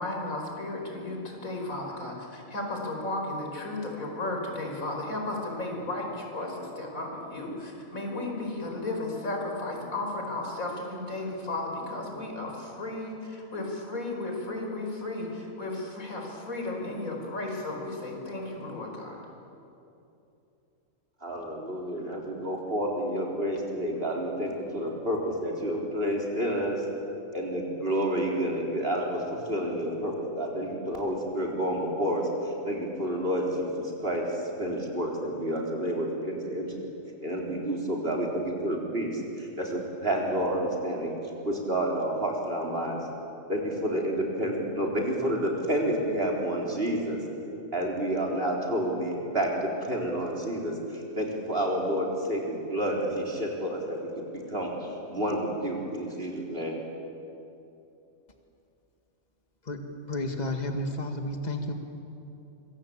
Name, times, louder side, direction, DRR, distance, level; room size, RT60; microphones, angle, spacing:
voice 1, 0.0-19.2, left 2 dB, 85° left, 1 dB, 5.3 m, -34 dB
voice 2, 21.2-26.9 27.3-36.9 37.2-41.1 41.4-43.0 43.5-47.2 47.7-56.8, right 1 dB, 45° right, -1 dB, 4.4 m, -29 dB
voice 3, 60.1-61.7, left 1 dB, 30° left, 4 dB, 2.1 m, -31 dB
25.5 x 24.0 x 8.7 m, 2.8 s
omnidirectional pair, 1.4 m